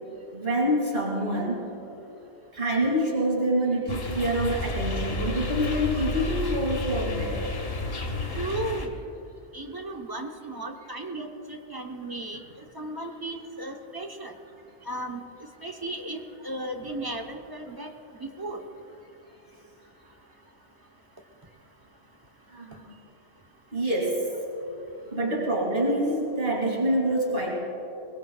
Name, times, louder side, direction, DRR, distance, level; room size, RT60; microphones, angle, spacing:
voice 1, 0.3-1.7 2.5-7.4 22.5-22.9 23.7-24.2 25.1-27.6, right 1 dB, 50° right, -3 dB, 2.7 m, -26 dB
sound 1, 3.9-8.9, left 2 dB, 65° left, 1.5 m, -31 dB
voice 2, 8.3-9.0 9.5-14.4 14.9-15.2 15.6-17.9 18.2-18.6, right 1 dB, 20° right, 3 dB, 1.0 m, -35 dB
22.5 x 21.0 x 2.4 m, 2.9 s
omnidirectional pair, 1.1 m